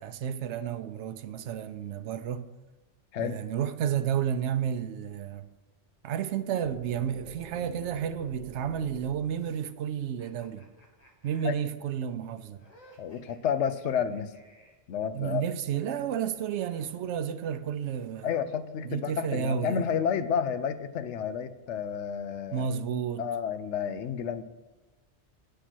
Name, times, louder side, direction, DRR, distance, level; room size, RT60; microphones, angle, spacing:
voice 1, 0.0-2.5 3.2-5.4 6.0-10.6 11.2-12.6 15.1-18.3 18.9-19.8 22.5-23.3, right 8 dB, 85° right, 0.9 m, -31 dB
sound 1, 6.6-10.5, right 6 dB, 50° right, 0.6 m, -48 dB
sound 2, 10.2-14.9 16.1-17.8, right 1 dB, 35° left, 1.7 m, -59 dB
voice 2, 13.0-14.3 14.9-15.4 18.2-22.7 23.2-24.4, left 7 dB, 85° left, 1.0 m, -30 dB
9.5 x 6.7 x 6.1 m
omnidirectional pair, 1.1 m